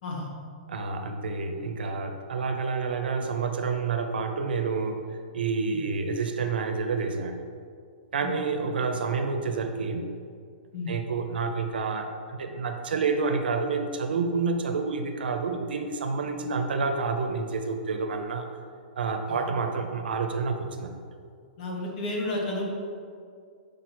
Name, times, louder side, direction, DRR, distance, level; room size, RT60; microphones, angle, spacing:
voice 1, 0.7-5.0 5.3-7.4 8.1-10.1 10.9-18.5 19.0-21.0, right 4 dB, 85° right, 6 dB, 0.8 m, -29 dB
voice 2, 21.6-22.6, left 2 dB, 60° left, -1 dB, 1.7 m, -32 dB
6.0 x 5.0 x 4.4 m, 2.2 s
hypercardioid pair, 135°, 5 cm